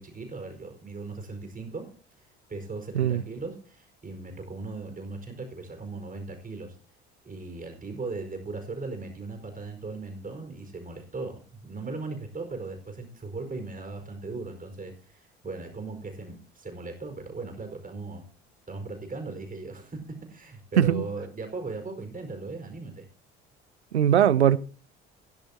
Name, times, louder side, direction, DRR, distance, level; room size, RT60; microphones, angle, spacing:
voice 1, 0.0-1.8 2.2-6.8 7.2-18.2 18.7-23.1, right 3 dB, 25° right, 4.7 m, -38 dB
voice 2, 23.9-24.6, right 10 dB, 85° right, 0.5 m, -20 dB
18.0 x 10.5 x 2.9 m
figure-of-eight pair, 55°, 32 cm